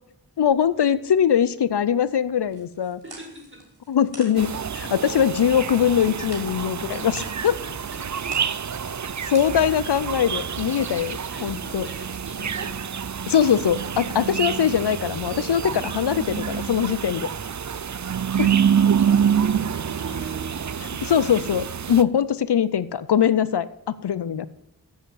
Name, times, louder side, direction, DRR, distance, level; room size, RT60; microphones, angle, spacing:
voice 1, 0.4-3.0 3.9-7.6 9.3-11.9 13.3-17.3 18.4-18.5 20.8-24.5, left 8 dB, 80° left, 17 dB, 0.5 m, -22 dB
sound 1, 2.5-10.1, right 2 dB, 65° right, 3.4 m, -47 dB
voice 2, 3.0-3.6 11.3-12.8 19.6-20.6, equal, 30° right, -2 dB, 5.0 m, -42 dB
sound 2, 4.4-22.0, right 7 dB, 45° right, 0.5 m, -27 dB
7.9 x 7.9 x 7.7 m, 0.79 s
wide cardioid pair, 45°, 40 cm